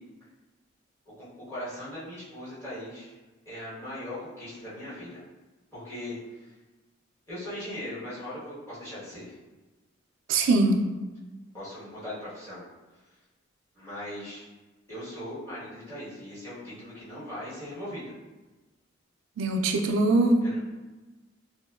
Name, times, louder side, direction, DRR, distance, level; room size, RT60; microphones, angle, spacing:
voice 1, 1.2-3.1 3.5-5.2 5.7-6.5 7.3-9.3 11.5-12.6 13.7-14.5 14.9-18.1 20.4-20.6, left 1 dB, 15° left, -11 dB, 1.0 m, -39 dB
voice 2, 10.3-10.8 19.4-20.4, right 2 dB, 75° right, 4 dB, 0.3 m, -22 dB
2.7 x 2.1 x 2.2 m, 1.2 s
head